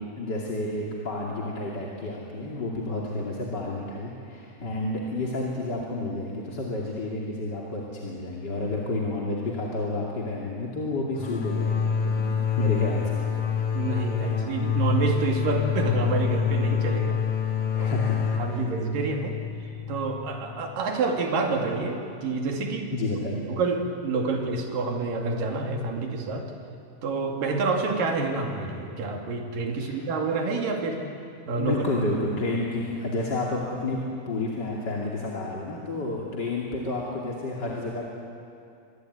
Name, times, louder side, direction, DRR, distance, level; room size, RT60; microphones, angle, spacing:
voice 1, 0.1-13.2 17.7-18.7 22.9-23.5 29.8-30.0 31.6-34.0 34.3-38.1, left 2 dB, 30° left, -3 dB, 2.4 m, -30 dB
sound 1, 11.2-20.7, left 6 dB, 50° left, 3.6 m, -27 dB
voice 2, 13.7-17.2 17.7-17.9 18.4-19.4 19.9-22.9 23.5-26.5 27.0-31.0 31.5-31.8, right 3 dB, 55° right, 2 dB, 3.8 m, -28 dB
26.0 x 22.0 x 9.5 m, 2.5 s
omnidirectional pair, 5.1 m